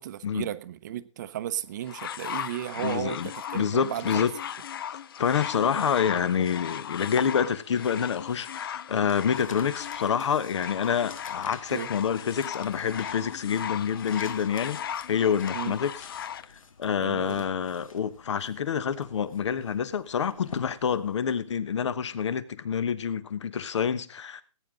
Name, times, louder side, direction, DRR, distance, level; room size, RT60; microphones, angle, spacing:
voice 1, 0.0-4.3 5.7-6.5 11.7-11.9 15.5-15.8 17.0-17.4, right 12 dB, 35° right, 0.8 m, -35 dB
sound 1, 1.9-16.5 17.3-17.4, left 9 dB, 45° left, 0.5 m, -37 dB
voice 2, 2.8-4.3 5.2-15.9 16.8-24.4, left 7 dB, 60° left, 1.2 m, -27 dB
sound 2, 9.0-21.6, left 5 dB, 80° left, 1.7 m, -49 dB
19.5 x 9.3 x 3.8 m
hypercardioid pair, 155°, 17 cm